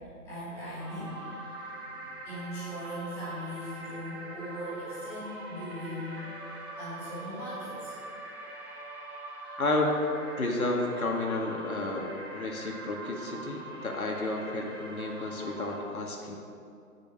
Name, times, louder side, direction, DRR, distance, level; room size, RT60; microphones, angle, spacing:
voice 1, 0.2-1.2 1.8-6.2 6.8-7.9, equal, 5° left, -13 dB, 2.6 m, -39 dB
sound 1, 0.8-15.8, right 2 dB, 15° right, 1.4 m, -43 dB
voice 2, 9.6-10.0 10.4-16.3, left 2 dB, 65° left, 1 dB, 2.1 m, -31 dB
10.5 x 8.7 x 8.0 m, 2.5 s
hypercardioid pair, 170°, 45 cm